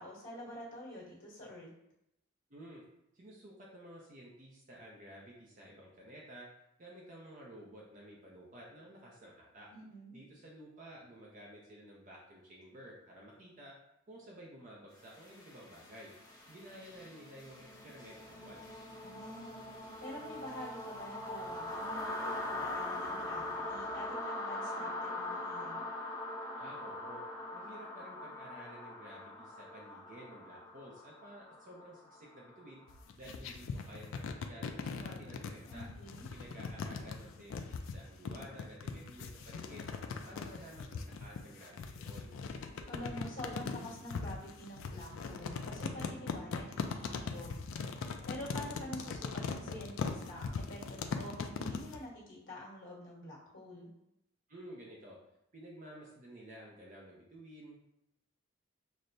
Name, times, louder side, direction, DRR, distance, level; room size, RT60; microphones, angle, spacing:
voice 1, 0.0-1.7 9.7-10.1 19.0-19.5 20.0-25.8 35.6-36.3 42.9-47.5 48.2-53.9, equal, 65° left, -5 dB, 1.4 m, -47 dB
voice 2, 2.5-2.8 3.1-6.5 6.8-9.7 10.1-13.7 14.1-16.1 16.5-18.7 26.6-27.2 27.5-32.8 33.2-35.9 36.3-39.9 40.3-42.3 54.5-55.2 55.5-57.8, right 1 dB, 40° right, -3 dB, 0.6 m, -52 dB
sound 1, 15.0-32.8, left 2 dB, 15° left, 0.7 m, -42 dB
sound 2, 32.9-52.0, left 5 dB, 85° left, 0.4 m, -40 dB
6.0 x 2.1 x 2.6 m, 0.82 s
head